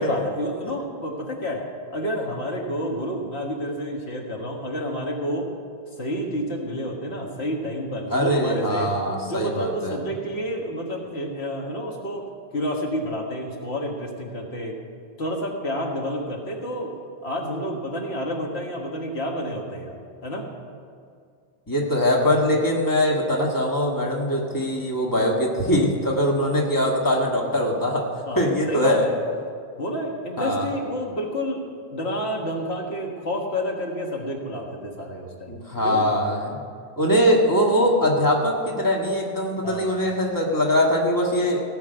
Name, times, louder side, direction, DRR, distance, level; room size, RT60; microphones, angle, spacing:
voice 1, 0.0-1.6 1.9-5.5 6.0-8.9 9.3-12.2 12.5-14.8 15.2-16.9 17.2-20.0 20.2-20.5 28.3-29.2 29.8-31.6 31.9-35.6 35.8-36.1 39.6-40.1, equal, 85° left, 0 dB, 1.9 m, -29 dB
voice 2, 8.1-10.0 21.7-28.1 28.4-29.1 30.4-30.7 35.5-36.6 37.0-41.6, equal, 20° left, -1 dB, 1.7 m, -22 dB
17.0 x 5.9 x 8.0 m, 2.2 s
omnidirectional pair, 1.1 m